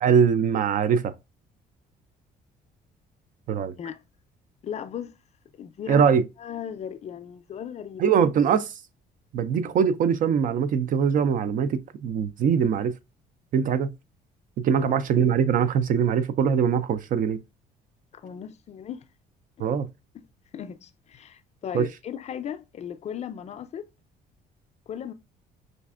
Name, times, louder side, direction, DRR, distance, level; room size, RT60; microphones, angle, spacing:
voice 1, 0.0-1.1 3.5-3.7 5.9-6.2 8.0-8.7 9.3-12.9 13.5-13.9 14.6-17.4 19.6-19.9 21.7-21.9, right 7 dB, 55° right, 0.4 m, -22 dB
voice 2, 4.6-5.1 5.6-6.0 6.4-8.0 14.7-15.0 18.1-19.1 20.1-20.2 20.5-23.9 24.9-25.1, left 8 dB, 40° left, 0.4 m, -37 dB
5.0 x 2.4 x 2.3 m
cardioid pair, 110°, 17 cm